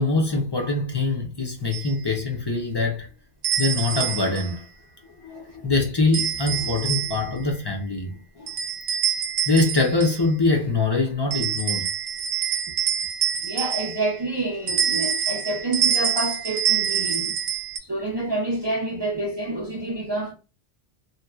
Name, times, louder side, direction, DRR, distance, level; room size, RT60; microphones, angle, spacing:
voice 1, 0.0-3.1 3.6-4.6 5.2-8.5 9.5-11.8, left 3 dB, 30° left, 0.5 m, -23 dB
sound 1, 1.7-1.9 3.4-4.5 6.1-7.4 8.5-10.3 11.3-14.2 14.7-17.8, right 8 dB, 75° right, 0.9 m, -26 dB
voice 2, 13.4-17.3 17.8-20.3, right 2 dB, 35° right, 0.4 m, -28 dB
2.8 x 2.2 x 2.3 m
omnidirectional pair, 1.1 m